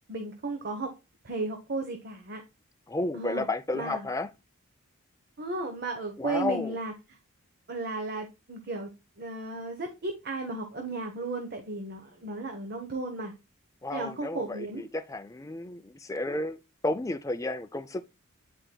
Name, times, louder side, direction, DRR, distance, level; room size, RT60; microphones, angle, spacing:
voice 1, 0.1-0.9 1.2-2.4 3.1-3.5 3.7-4.0 5.4-6.9 7.7-8.9 9.2-13.3 13.9-14.9, right 2 dB, 45° right, 1.0 m, -34 dB
voice 2, 2.9-4.3 6.2-6.8 13.8-18.1, left 2 dB, 15° left, 0.4 m, -32 dB
9.8 x 4.4 x 2.2 m
head